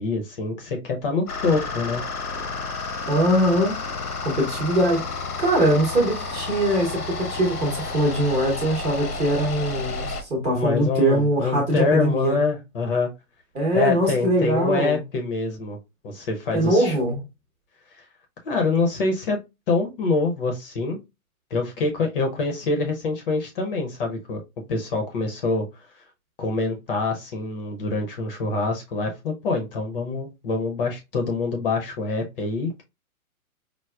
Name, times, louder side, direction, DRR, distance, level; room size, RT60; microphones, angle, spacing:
voice 1, 0.0-2.0 10.5-13.1 13.7-15.8 16.0-17.0 18.4-19.4 19.7-21.0 21.5-24.4 24.7-25.6 26.4-32.8, left 3 dB, 40° left, 0.6 m, -25 dB
sound 1, 1.3-10.2, left 3 dB, 90° left, 0.9 m, -31 dB
voice 2, 3.1-3.7 4.2-7.0 7.3-12.4 13.5-15.0 16.5-17.2, right 1 dB, 15° right, 0.8 m, -22 dB
4.6 x 2.0 x 2.2 m
hypercardioid pair, 130°, 44 cm